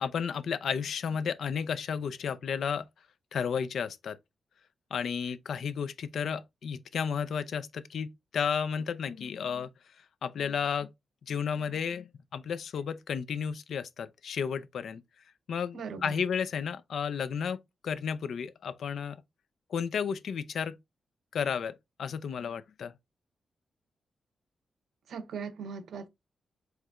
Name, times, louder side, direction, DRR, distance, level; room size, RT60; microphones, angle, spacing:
voice 1, 0.0-2.8 3.3-4.2 4.9-9.7 10.2-10.9 11.3-15.0 15.5-17.6 17.8-19.2 19.7-20.8 21.3-22.9, left 7 dB, 80° left, 0.4 m, -32 dB
voice 2, 15.7-16.1 25.1-26.1, right 5 dB, 80° right, 0.5 m, -39 dB
4.7 x 3.1 x 2.3 m
cardioid pair, 80°, 0 cm